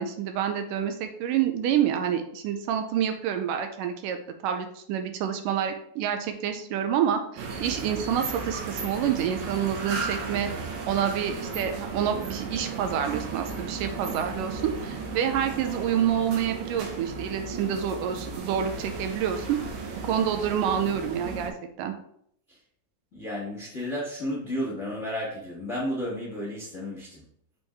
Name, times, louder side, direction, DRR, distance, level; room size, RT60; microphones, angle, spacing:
voice 1, 0.0-4.2 4.4-10.5 10.9-19.6 20.0-21.5 21.8-21.9, right 9 dB, 80° right, 6 dB, 2.2 m, -28 dB
sound 1, 7.4-21.5, right 4 dB, 65° right, 2.2 m, -35 dB
voice 2, 23.1-27.2, equal, 40° left, -5 dB, 1.0 m, -32 dB
6.4 x 5.3 x 3.5 m, 0.67 s
omnidirectional pair, 3.9 m